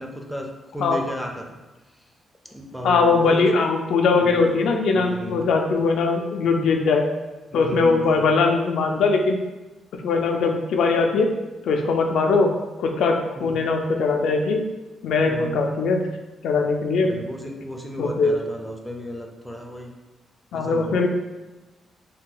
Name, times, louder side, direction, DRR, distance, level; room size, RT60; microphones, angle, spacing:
voice 1, 0.0-1.4 2.5-3.4 4.2-4.5 4.9-5.4 7.5-8.2 13.3-13.6 15.2-15.6 17.1-19.9 20.5-21.1, equal, ahead, 1 dB, 0.4 m, -34 dB
voice 2, 2.8-7.0 7.5-9.4 9.9-11.3 11.6-12.5 12.8-14.7 15.0-16.1 16.4-17.2 18.0-18.4 20.5-21.1, left 4 dB, 80° left, 3 dB, 0.4 m, -21 dB
2.8 x 2.3 x 3.7 m, 1.1 s
cardioid pair, 130°, 0 cm